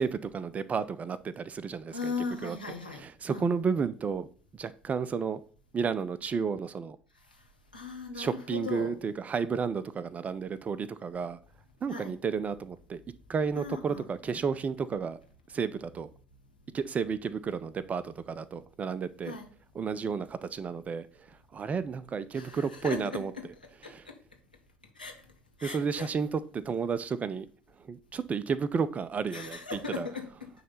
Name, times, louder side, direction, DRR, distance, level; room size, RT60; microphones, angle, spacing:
voice 1, 0.0-2.1 2.4-2.6 3.0-4.3 4.6-5.4 5.7-7.0 8.2-11.4 11.8-13.0 13.3-15.2 15.5-16.1 16.7-19.4 19.7-21.3 21.5-23.3 23.9-24.0 25.6-27.5 27.8-29.6 30.0-30.1, right 6 dB, 30° right, 0.6 m, -32 dB
voice 2, 1.9-3.0 3.3-3.5 7.7-8.9 11.9-12.1 13.5-14.0 19.2-19.5 22.3-23.5 23.8-24.1 25.0-25.1 25.6-26.1 29.3-30.5, left 4 dB, 90° left, 1.2 m, -38 dB
9.3 x 3.3 x 5.6 m
figure-of-eight pair, 60°, 5 cm